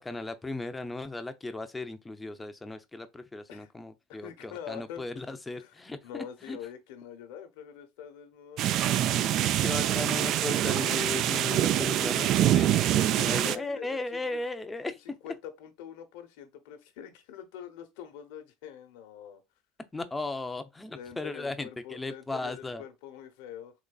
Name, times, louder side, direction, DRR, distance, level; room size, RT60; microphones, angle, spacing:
voice 1, 0.0-6.6 9.6-12.7 13.2-14.9 19.9-22.8, left 2 dB, 10° left, 0.5 m, -36 dB
voice 2, 4.1-5.1 5.6-8.6 12.9-14.4 14.9-19.4 20.9-23.7, left 9 dB, 75° left, 0.9 m, -44 dB
sound 1, 8.6-13.6, right 12 dB, 55° right, 0.3 m, -25 dB
3.9 x 3.1 x 2.3 m
supercardioid pair, 110°, 0 cm